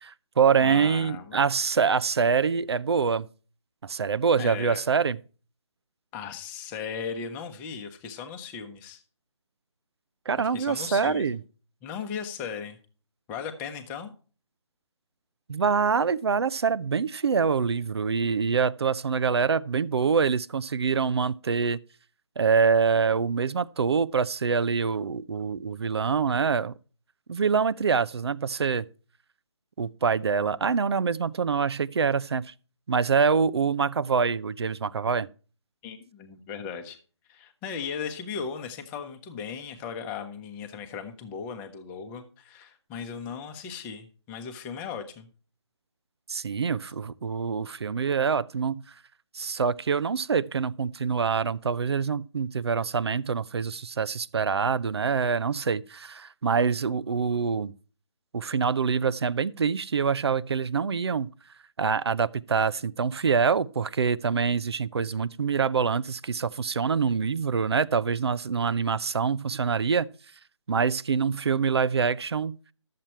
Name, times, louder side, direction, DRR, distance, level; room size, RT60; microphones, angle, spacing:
voice 1, 0.0-3.3 3.8-5.2 10.3-11.4 15.5-21.8 22.4-26.7 27.3-28.8 29.8-32.5 32.9-35.3 46.3-48.8 49.3-57.7 58.3-61.3 61.8-70.1 70.7-72.6, right 6 dB, 60° right, 0.6 m, -25 dB
voice 2, 0.6-1.4 4.4-4.8 6.1-9.0 10.5-11.3 11.8-12.8 13.3-14.1 35.8-37.0 37.3-45.3, left 6 dB, 10° left, 1.0 m, -37 dB
12.5 x 7.6 x 4.4 m
figure-of-eight pair, 160°, 16 cm